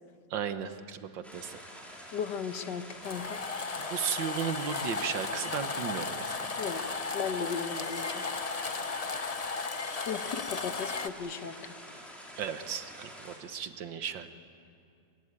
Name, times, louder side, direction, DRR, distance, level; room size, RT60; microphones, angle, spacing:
voice 1, 0.3-1.6 3.8-6.3 12.4-14.3, right 8 dB, 85° right, 9 dB, 1.9 m, -35 dB
sound 1, 1.2-13.4, equal, ahead, 4.4 m, -48 dB
voice 2, 2.1-3.4 3.9-4.0 6.6-8.2 10.1-11.7, left 6 dB, 70° left, 8 dB, 1.8 m, -36 dB
sound 2, 3.0-11.1, left 4 dB, 45° left, 0.5 m, -35 dB
24.0 x 22.0 x 9.8 m, 2.4 s
omnidirectional pair, 2.0 m